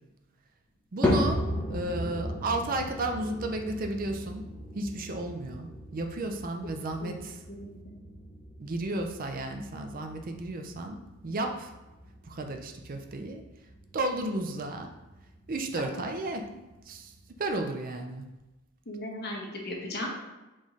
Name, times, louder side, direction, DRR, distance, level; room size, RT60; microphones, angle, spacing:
voice 1, 0.9-1.4 1.7-4.4 4.8-7.4 8.6-11.7 12.2-13.4 13.9-14.9 15.5-16.5 16.9-17.1 17.4-18.3, right 2 dB, 40° right, 5 dB, 0.4 m, -33 dB
sound 1, 1.0-17.5, left 1 dB, 10° left, 0.7 m, -36 dB
voice 2, 7.0-8.0 15.7-16.1 18.9-20.1, left 1 dB, 45° left, -1 dB, 0.9 m, -38 dB
4.0 x 3.7 x 3.1 m, 1.0 s
head